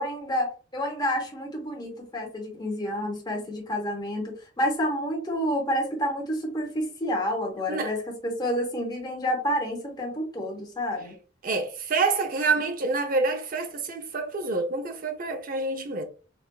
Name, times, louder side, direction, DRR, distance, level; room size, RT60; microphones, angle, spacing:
voice 1, 0.0-11.1, equal, 20° left, 0.9 m, -29 dB
voice 2, 11.4-16.0, right 3 dB, 45° right, 0.6 m, -27 dB
4.0 x 2.5 x 2.2 m
head